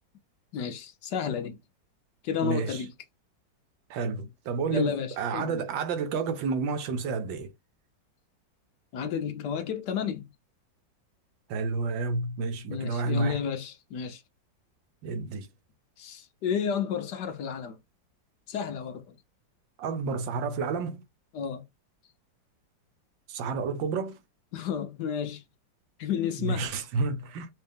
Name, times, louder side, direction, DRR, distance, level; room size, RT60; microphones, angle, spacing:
voice 1, 0.5-1.6 2.2-2.9 4.7-5.6 8.9-10.3 12.7-14.2 16.0-17.8 18.5-19.1 21.3-21.6 24.5-25.4 26.0-26.7, left 7 dB, 65° left, 1.3 m, -32 dB
voice 2, 2.4-2.8 3.9-7.5 11.5-13.4 15.0-15.5 19.8-21.0 23.3-24.2 26.4-27.5, right 4 dB, 75° right, 1.4 m, -30 dB
4.4 x 2.7 x 3.4 m
omnidirectional pair, 2.1 m